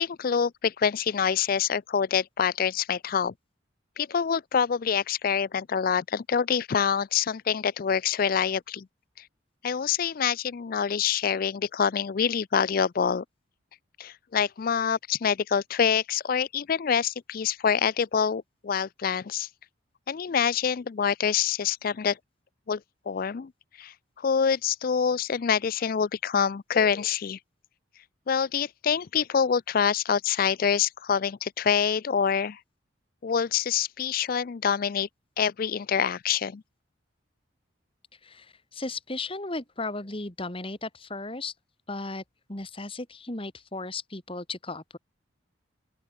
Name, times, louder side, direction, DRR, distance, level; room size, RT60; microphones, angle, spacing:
voice 1, 0.0-3.3 4.0-8.8 9.2-9.3 9.6-13.2 14.0-19.5 20.1-22.2 22.7-22.8 23.1-23.5 23.8-27.4 28.3-32.6 33.2-35.1 35.4-36.6, left 7 dB, 45° left, 0.4 m, -26 dB
voice 2, 38.2-41.5 41.9-42.2 42.5-45.0, left 3 dB, 25° left, 1.9 m, -35 dB
open air
head